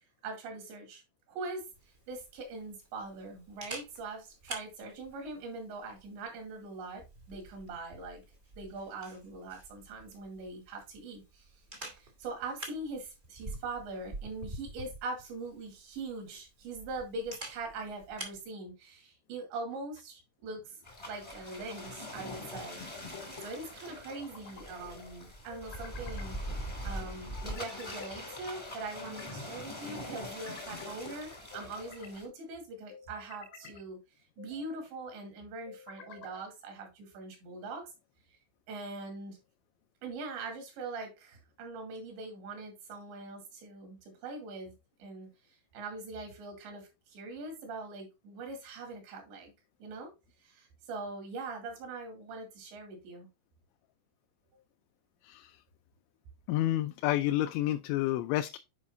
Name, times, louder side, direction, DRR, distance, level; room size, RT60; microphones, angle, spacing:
voice 1, 0.2-1.0 1.3-1.6 2.1-8.2 8.6-11.5 11.8-20.8 21.1-26.4 26.8-34.0 34.4-37.9 38.7-39.4 40.0-44.7 45.0-45.3 45.7-49.5 49.8-50.1 50.4-53.3, right 3 dB, 75° right, 4.6 m, -42 dB
Camera, 1.7-18.4, right 2 dB, 45° right, 0.8 m, -48 dB
sound 1, 20.8-32.3, left 1 dB, 15° left, 0.8 m, -42 dB
sound 2, 21.8-22.5 23.9-24.6 25.5-26.3 27.3-28.1 28.7-29.4 30.0-30.9 31.5-32.2 32.9-33.8 34.4-34.9 35.7-36.5, left 5 dB, 70° left, 1.7 m, -52 dB
voice 2, 55.2-55.6 56.5-58.6, left 14 dB, 85° left, 2.8 m, -29 dB
9.9 x 5.2 x 2.6 m
omnidirectional pair, 5.3 m